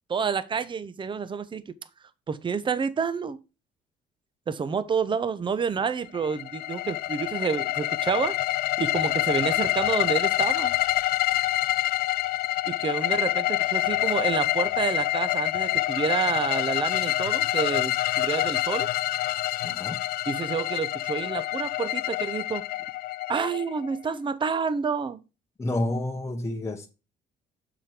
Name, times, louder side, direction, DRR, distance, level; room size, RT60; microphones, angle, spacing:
voice 1, 0.1-1.7 2.3-3.4 4.5-8.3 8.8-10.7 12.7-18.9 20.3-22.7 23.3-25.2, right 6 dB, 30° right, 0.9 m, -29 dB
sound 1, 6.1-24.0, left 16 dB, 65° left, 0.4 m, -27 dB
voice 2, 19.6-20.0 25.6-26.9, left 1 dB, 15° left, 1.0 m, -29 dB
7.5 x 6.0 x 5.0 m
cardioid pair, 110°, 17 cm